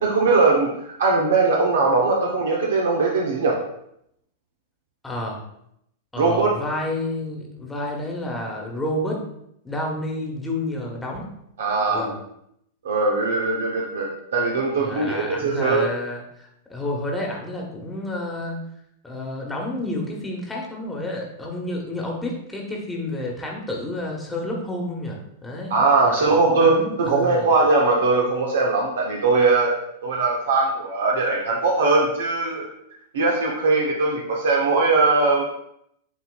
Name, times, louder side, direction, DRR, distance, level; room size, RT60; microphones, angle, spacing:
voice 1, 0.0-3.6 6.2-6.5 11.6-12.1 12.8-15.8 25.7-29.7 30.0-32.7 33.1-35.4, right 3 dB, 75° right, -1 dB, 0.8 m, -20 dB
voice 2, 5.0-5.4 6.1-9.2 9.6-11.2 11.9-12.2 14.8-18.6 19.0-25.7 26.0-27.5, left 1 dB, 10° left, -1 dB, 1.2 m, -30 dB
8.2 x 2.8 x 2.3 m, 0.75 s
hypercardioid pair, 105°, 0 cm